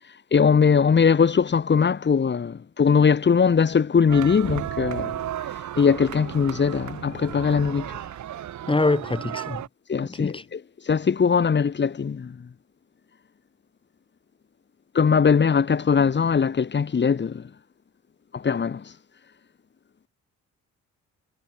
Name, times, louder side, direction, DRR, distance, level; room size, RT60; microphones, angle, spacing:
voice 1, 0.3-5.2 5.8-8.0 9.9-10.6 10.9-12.4 14.9-17.4 18.3-18.8, left 6 dB, 35° left, 2.2 m, -20 dB
sound 1, 4.1-9.7, right 11 dB, 70° right, 5.4 m, -34 dB
voice 2, 8.7-9.6 10.0-10.4, left 2 dB, 15° left, 4.7 m, -24 dB
cardioid pair, 90°, 30 cm